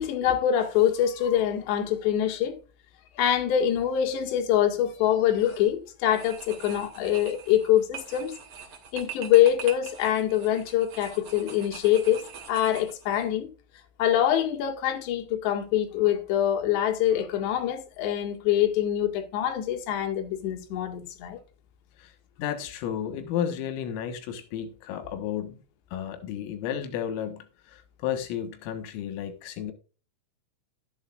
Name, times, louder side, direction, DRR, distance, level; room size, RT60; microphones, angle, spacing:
voice 1, 0.0-2.6 3.2-8.3 8.9-13.5 14.0-21.4, left 11 dB, 65° left, 3.9 m, -24 dB
sound 1, 5.3-5.7 6.1-13.3, right 7 dB, 40° right, 2.8 m, -44 dB
voice 2, 22.4-25.6 25.9-29.7, left 9 dB, 85° left, 4.0 m, -32 dB
12.5 x 11.5 x 2.4 m
omnidirectional pair, 5.8 m